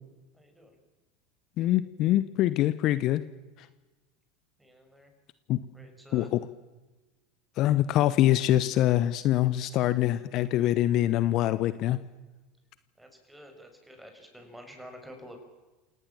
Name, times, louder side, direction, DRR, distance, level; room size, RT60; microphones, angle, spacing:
voice 1, 0.4-0.7 4.6-5.1 5.7-6.3 13.0-15.4, equal, 5° right, 5 dB, 6.8 m, -49 dB
voice 2, 1.6-3.2 5.5-5.6 6.1-6.5 7.6-12.0, left 13 dB, 50° left, 15 dB, 0.9 m, -24 dB
27.5 x 18.0 x 7.5 m, 1.2 s
hypercardioid pair, 80°, 0 cm